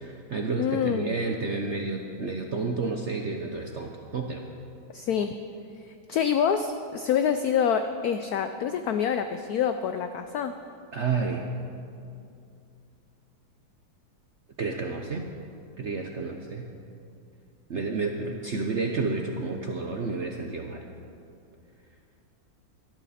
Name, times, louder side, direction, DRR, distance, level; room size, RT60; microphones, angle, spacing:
voice 1, 0.0-4.5 10.9-11.5 14.6-15.3 15.8-16.7 17.7-20.9, right 4 dB, 55° right, 2 dB, 0.8 m, -30 dB
voice 2, 0.6-1.1 4.9-5.3 6.1-10.5, left 8 dB, 75° left, 8 dB, 0.8 m, -26 dB
18.0 x 13.0 x 4.2 m, 2.5 s
omnidirectional pair, 2.2 m